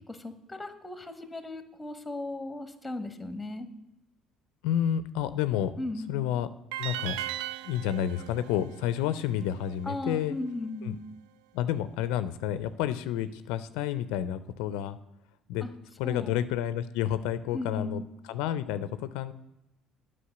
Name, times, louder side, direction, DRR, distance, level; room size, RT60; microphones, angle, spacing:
voice 1, 0.1-3.7 5.8-6.2 9.8-11.0 15.6-15.7 16.0-16.4 17.5-18.1, left 2 dB, 10° left, 9 dB, 1.3 m, -36 dB
voice 2, 4.6-5.7 6.1-6.5 6.8-7.2 7.6-10.4 10.8-11.0 11.5-15.0 15.5-15.6 16.0-18.0 18.3-19.3, left 10 dB, 85° left, 13 dB, 0.4 m, -30 dB
sound 1, 6.7-9.9, right 13 dB, 85° right, 0.3 m, -38 dB
8.5 x 5.4 x 7.8 m, 0.89 s
supercardioid pair, 80°, 0 cm